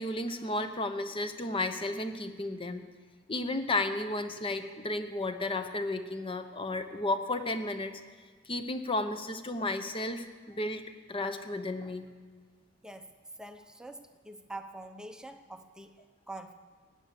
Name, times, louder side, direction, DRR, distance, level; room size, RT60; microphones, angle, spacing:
voice 1, 0.0-2.8 3.3-8.0 8.5-10.8 11.1-12.1, left 2 dB, 25° left, 8 dB, 0.9 m, -33 dB
voice 2, 12.8-16.0 16.3-16.5, right 2 dB, 5° right, 7 dB, 0.7 m, -45 dB
15.5 x 9.9 x 6.9 m, 1.5 s
head